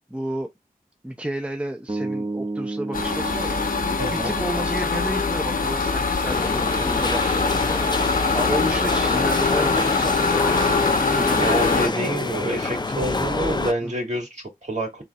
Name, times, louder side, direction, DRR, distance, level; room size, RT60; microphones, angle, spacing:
voice 1, 0.1-0.5 1.0-3.7 4.1-10.7 11.1-11.6 13.8-13.9, right 1 dB, 5° right, 0.7 m, -32 dB
sound 1, 1.9-6.0, right 2 dB, 30° right, 1.0 m, -33 dB
sound 2, 2.9-11.9, left 4 dB, 65° left, 0.9 m, -23 dB
voice 2, 4.0-4.3 11.4-15.0, right 1 dB, 50° right, 2.4 m, -27 dB
sound 3, 6.3-13.7, left 3 dB, 30° left, 0.6 m, -27 dB
3.9 x 2.5 x 4.2 m
cardioid pair, 50°, 16 cm